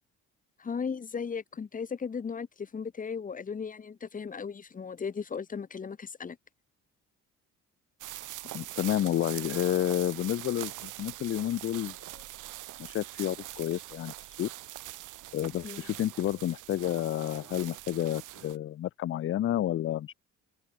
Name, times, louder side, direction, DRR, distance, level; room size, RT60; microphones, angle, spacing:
voice 1, 0.6-6.4 15.6-15.8, left 6 dB, 25° left, 0.9 m, -36 dB
sound 1, 8.0-18.6, right 15 dB, 85° right, 1.5 m, -43 dB
voice 2, 8.5-12.2 12.8-14.5 15.3-20.1, left 12 dB, 45° left, 0.4 m, -30 dB
open air
cardioid pair, 90°, 30 cm